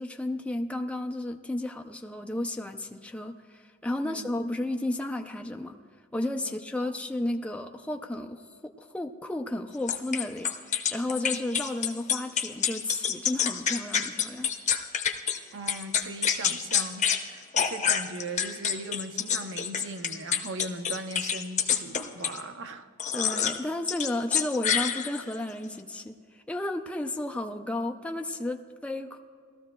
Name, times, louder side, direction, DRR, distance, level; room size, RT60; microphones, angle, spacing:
voice 1, 0.0-5.8 6.1-14.5 23.1-29.2, left 1 dB, 5° left, 4 dB, 0.4 m, -33 dB
sound 1, 9.9-15.4 15.7-17.2 17.5-22.4 23.0-23.6 23.9-25.4, left 8 dB, 35° left, 0.8 m, -27 dB
voice 2, 15.5-23.3, right 2 dB, 65° right, 8 dB, 0.7 m, -39 dB
19.5 x 13.5 x 2.2 m, 2.1 s
head